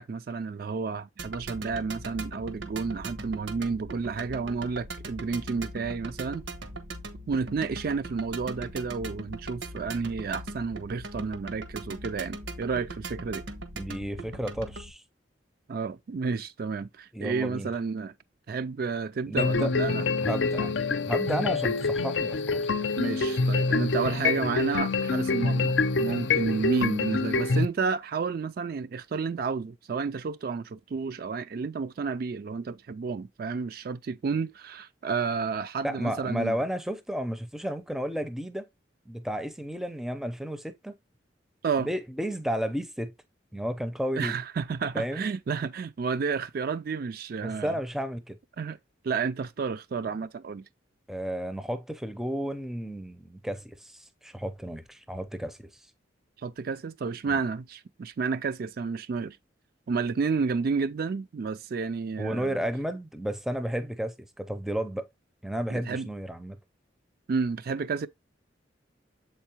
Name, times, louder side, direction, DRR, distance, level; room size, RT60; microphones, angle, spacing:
voice 1, 0.0-6.4 7.3-13.4 15.7-18.1 18.5-20.1 23.0-36.6 41.6-41.9 44.2-47.8 48.6-48.8 49.0-50.7 56.4-59.4 59.9-62.6 65.7-66.1 67.3-68.1, right 5 dB, 50° right, 0.4 m, -31 dB
sound 1, 1.2-14.9, right 2 dB, 80° right, 1.1 m, -40 dB
voice 2, 13.8-15.0 17.1-17.7 19.3-19.7 20.2-20.7 21.0-22.7 35.8-38.7 39.1-40.9 41.8-43.1 43.5-44.4 44.9-45.4 47.4-48.4 51.1-55.7 57.3-57.4 62.2-65.1 65.4-66.6, equal, ahead, 0.5 m, -32 dB
sound 2, 19.4-27.7, left 3 dB, 75° left, 0.6 m, -26 dB
7.2 x 4.6 x 2.9 m
head